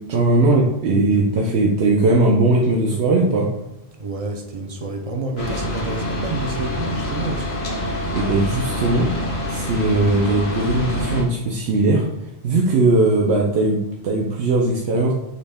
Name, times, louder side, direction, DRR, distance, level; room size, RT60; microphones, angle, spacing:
voice 1, 0.0-3.5 8.1-9.1 9.5-12.1 12.4-15.1, right 2 dB, 85° right, -2 dB, 0.9 m, -19 dB
voice 2, 3.9-7.6, right 3 dB, 55° right, 4 dB, 0.4 m, -29 dB
sound 1, 5.4-11.2, left 1 dB, 80° left, 1.0 m, -26 dB
6.1 x 2.1 x 3.5 m, 0.87 s
omnidirectional pair, 1.1 m